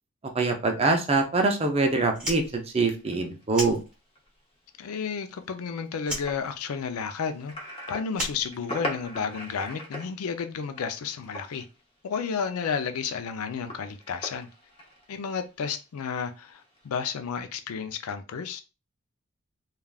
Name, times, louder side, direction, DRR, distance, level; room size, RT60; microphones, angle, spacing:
voice 1, 0.3-3.8, right 3 dB, 30° right, 0.5 m, -24 dB
Fire, 2.1-4.4 4.7-5.7 6.0-9.2, equal, 5° right, 1.1 m, -37 dB
sound 1, 2.9-11.8 12.1-12.6 12.9-15.8 16.4-16.9, left 1 dB, 25° left, 0.7 m, -41 dB
voice 2, 4.8-7.5 7.9-11.7 12.0-14.5 15.1-18.6, left 6 dB, 90° left, 0.4 m, -32 dB
3.3 x 2.3 x 2.3 m
head